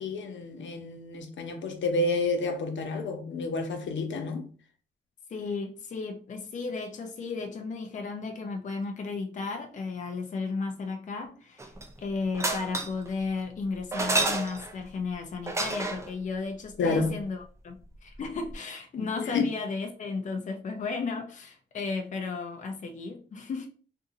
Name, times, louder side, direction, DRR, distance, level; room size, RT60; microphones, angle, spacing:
voice 1, 0.0-4.5 16.8-17.2 19.0-19.5, left 3 dB, 85° left, 0.7 m, -29 dB
voice 2, 5.3-11.7 12.0-23.7, left 4 dB, 40° left, 0.5 m, -34 dB
sound 1, 11.6-12.0 12.3-13.1 13.9-14.8 15.5-16.1 18.2-18.3 18.5-18.6, right 2 dB, 15° right, 0.4 m, -29 dB
2.6 x 2.5 x 3.8 m
wide cardioid pair, 175°, 19 cm